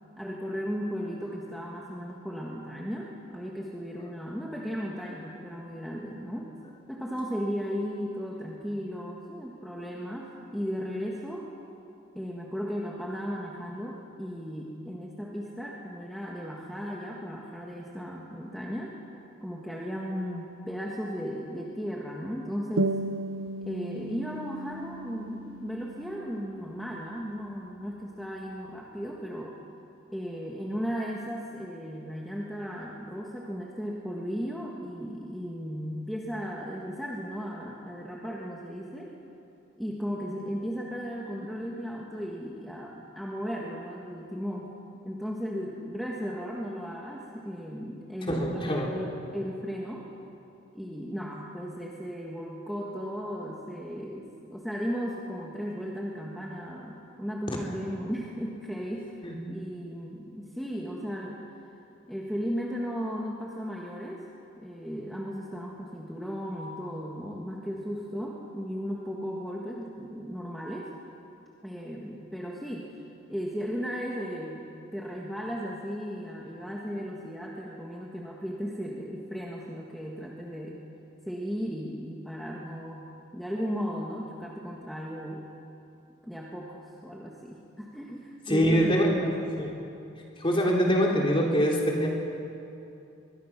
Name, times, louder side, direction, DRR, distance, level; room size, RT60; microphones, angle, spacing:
voice 1, 0.2-6.5 6.9-11.5 12.1-18.9 19.4-23.0 23.6-29.5 30.1-39.1 39.8-44.7 45.0-50.0 50.7-59.2 59.5-61.4 62.1-64.2 64.6-70.9 71.6-72.9 73.3-80.8 81.3-83.1 83.3-85.4 86.2-89.6, equal, ahead, -3 dB, 1.5 m, -36 dB
sound 1, 22.8-27.8, right 2 dB, 85° right, 0.7 m, -35 dB
voice 2, 48.3-48.9 59.2-59.3 88.5-89.1 89.6-89.8 90.4-92.1, equal, 25° left, -2 dB, 3.3 m, -24 dB
22.5 x 21.5 x 6.0 m, 2.7 s
head